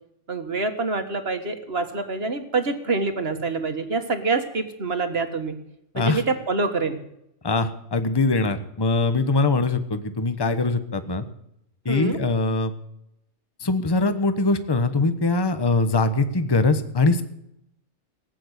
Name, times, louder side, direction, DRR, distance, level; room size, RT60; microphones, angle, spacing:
voice 1, 0.3-5.6 6.0-7.0 11.9-12.2, right 3 dB, 50° right, 6 dB, 2.0 m, -26 dB
voice 2, 7.4-11.2 11.8-12.7 13.6-17.2, left 3 dB, 20° left, 10 dB, 1.1 m, -22 dB
19.0 x 9.2 x 8.2 m, 0.79 s
omnidirectional pair, 1.4 m